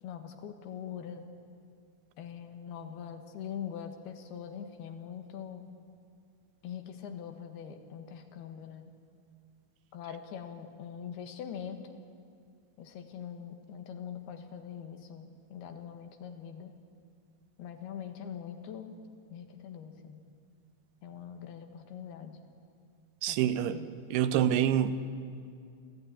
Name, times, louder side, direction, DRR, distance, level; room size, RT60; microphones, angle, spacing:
voice 1, 0.0-1.3 2.2-5.7 6.6-8.9 9.9-12.0 12.8-16.7 17.6-19.0 19.3-20.2 21.0-22.4 23.3-23.9, left 8 dB, 85° left, 3.6 m, -43 dB
voice 2, 23.2-23.8 24.1-25.0, right 10 dB, 85° right, 2.9 m, -26 dB
27.5 x 14.5 x 9.9 m
omnidirectional pair, 4.4 m